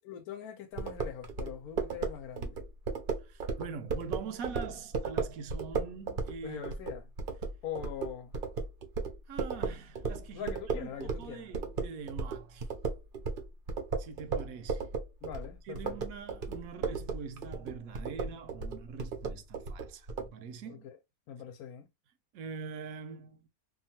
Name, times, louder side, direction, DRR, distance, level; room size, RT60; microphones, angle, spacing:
voice 1, 0.0-2.6 6.4-7.0 7.6-8.3 10.3-11.5 15.2-16.0 20.7-21.0 21.3-21.9, left 9 dB, 85° left, 1.1 m, -42 dB
sound 1, 0.8-11.3 11.5-20.3, right 5 dB, 55° right, 0.6 m, -35 dB
voice 2, 3.2-6.6 9.3-12.7 14.0-14.9 15.6-20.8 22.3-23.5, right 5 dB, 75° right, 1.0 m, -44 dB
2.8 x 2.3 x 2.7 m
omnidirectional pair, 1.6 m